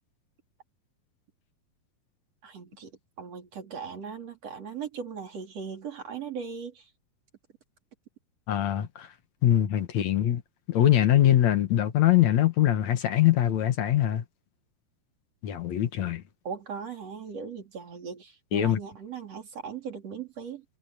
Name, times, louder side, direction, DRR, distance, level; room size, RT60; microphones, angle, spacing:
voice 1, 2.4-2.9 3.2-6.9 16.4-20.6, right 6 dB, 40° right, 4.1 m, -38 dB
voice 2, 8.5-9.1 9.4-10.4 10.7-14.2 15.4-16.2 18.5-18.8, left 12 dB, 60° left, 2.1 m, -23 dB
omnidirectional pair, 4.6 m